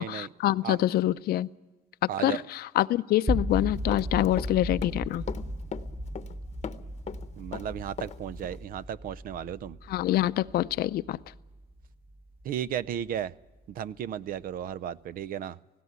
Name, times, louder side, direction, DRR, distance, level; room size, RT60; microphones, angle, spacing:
voice 1, 0.0-1.5 2.2-5.2 9.9-11.2, left 14 dB, 65° left, 15 dB, 0.6 m, -26 dB
voice 2, 2.1-2.4 7.4-9.8 12.4-13.3 13.7-15.6, right 10 dB, 60° right, 19 dB, 0.6 m, -34 dB
sound 1, 3.3-13.3, equal, 10° right, 0.9 m, -36 dB
Run, 3.5-4.5 4.8-6.4 6.6-8.2 8.4-8.6, left 7 dB, 40° left, 0.9 m, -38 dB
18.0 x 16.5 x 9.5 m, 1.2 s
cardioid pair, 110°, 17 cm